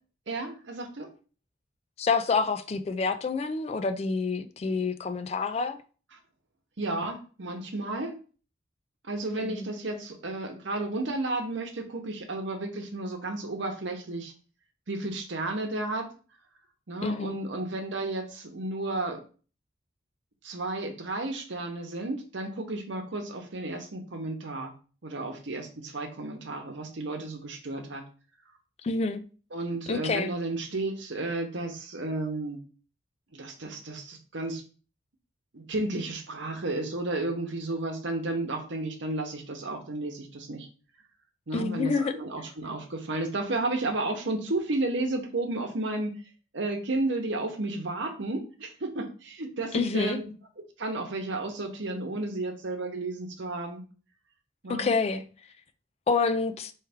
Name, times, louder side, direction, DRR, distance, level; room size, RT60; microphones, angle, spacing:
voice 1, 0.3-1.1 6.8-8.1 9.1-14.3 14.9-16.1 16.9-19.2 20.4-24.7 25.0-28.0 29.5-32.6 33.3-34.6 35.5-40.7 41.5-46.1 46.5-53.8 54.6-54.9, right 2 dB, 70° right, 0.9 m, -32 dB
voice 2, 2.0-5.8 9.4-9.7 17.0-17.3 28.8-29.2 29.9-30.3 41.5-42.1 49.7-50.2 54.7-55.2 56.1-56.7, left 4 dB, 30° left, 0.3 m, -27 dB
4.4 x 3.1 x 3.5 m
head